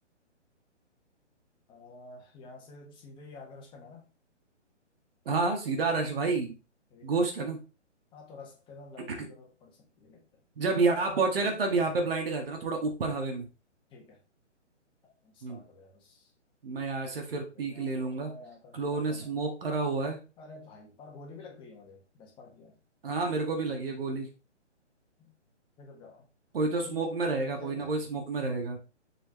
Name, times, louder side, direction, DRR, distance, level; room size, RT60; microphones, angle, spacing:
voice 1, 1.7-4.1 6.9-7.2 8.1-10.2 13.9-14.2 15.0-16.3 17.5-19.3 20.4-22.8 25.2-25.3 25.8-26.2 26.8-27.0 27.4-27.9, left 3 dB, 15° left, 1.8 m, -50 dB
voice 2, 5.3-6.6 7.0-7.6 9.2-9.3 10.6-13.5 15.4-15.6 16.6-18.3 18.7-20.2 23.0-24.3 26.5-28.8, right 3 dB, 50° right, 1.9 m, -29 dB
7.1 x 5.5 x 3.3 m
figure-of-eight pair, 140°, 36 cm